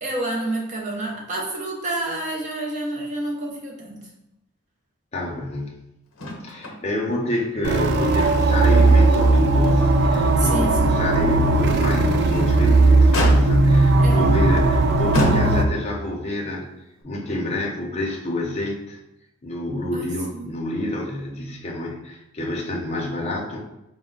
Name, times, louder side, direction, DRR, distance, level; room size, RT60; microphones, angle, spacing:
voice 1, 0.0-4.0 10.4-11.0 14.0-14.3 20.3-20.5, right 2 dB, 35° right, -2 dB, 0.7 m, -29 dB
voice 2, 5.1-5.8 6.4-16.7 17.0-19.0 19.4-23.6, left 1 dB, 30° left, -1 dB, 0.6 m, -28 dB
Motor vehicle (road), 6.2-6.8 7.1-7.2 7.7-8.7 9.1-9.2 9.8-9.9 12.1-12.6 13.1-13.8 14.6-14.7 15.1-15.9 17.0-17.1, left 1 dB, 75° left, 0.7 m, -27 dB
sound 1, 7.6-15.6, right 2 dB, 55° right, 0.3 m, -17 dB
4.4 x 2.1 x 3.8 m, 0.89 s
head